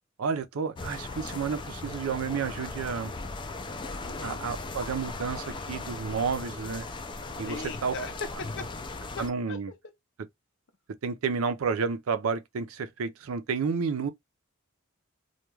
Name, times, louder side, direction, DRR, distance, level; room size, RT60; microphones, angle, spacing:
voice 1, 0.2-3.1 4.2-6.9 7.4-7.9 9.2-9.7 11.0-14.1, right 5 dB, 80° right, 0.5 m, -31 dB
sound 1, 0.8-9.3, left 3 dB, 25° left, 0.3 m, -38 dB
voice 2, 4.0-4.5 7.4-9.8, left 3 dB, 60° left, 0.6 m, -40 dB
2.3 x 2.2 x 3.0 m
head